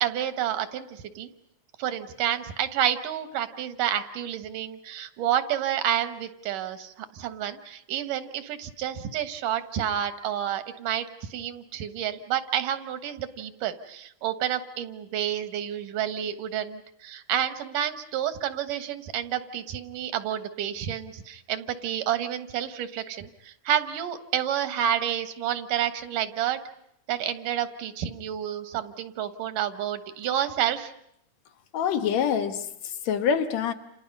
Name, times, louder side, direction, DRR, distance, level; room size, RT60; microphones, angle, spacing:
voice 1, 0.0-1.3 1.8-26.6 27.1-30.9, right 10 dB, 85° right, 2.9 m, -29 dB
voice 2, 31.7-33.7, left 7 dB, 65° left, 2.3 m, -26 dB
30.0 x 28.0 x 5.4 m
omnidirectional pair, 3.7 m